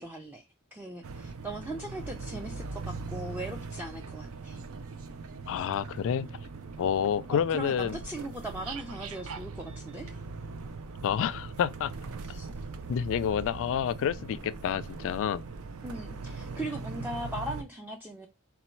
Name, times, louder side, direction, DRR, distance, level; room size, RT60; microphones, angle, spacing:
voice 1, 0.0-4.6 7.3-10.2 12.2-12.6 15.8-18.3, right 1 dB, 10° right, 0.4 m, -39 dB
sound 1, 1.0-17.6, right 4 dB, 65° right, 0.5 m, -41 dB
voice 2, 5.5-6.3 6.8-8.0 11.0-11.9 12.9-15.4, left 8 dB, 60° left, 0.3 m, -29 dB
4.0 x 2.2 x 4.4 m
head